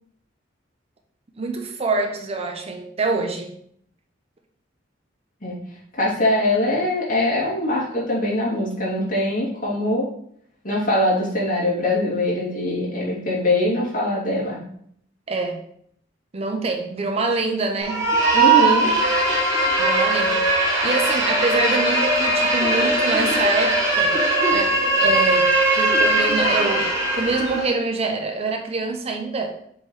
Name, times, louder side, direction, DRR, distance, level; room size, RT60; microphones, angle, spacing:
voice 1, 1.4-3.6 15.3-15.6 16.3-18.0 19.8-20.4 20.8-24.1 24.5-26.9 27.1-29.6, right 3 dB, 35° right, 4 dB, 0.6 m, -25 dB
voice 2, 6.0-10.1 10.6-14.6 18.3-18.9, left 1 dB, 45° left, -7 dB, 2.6 m, -22 dB
sound 1, 17.8-27.7, right 2 dB, 20° right, 2.3 m, -19 dB
7.4 x 4.0 x 3.2 m, 0.66 s
head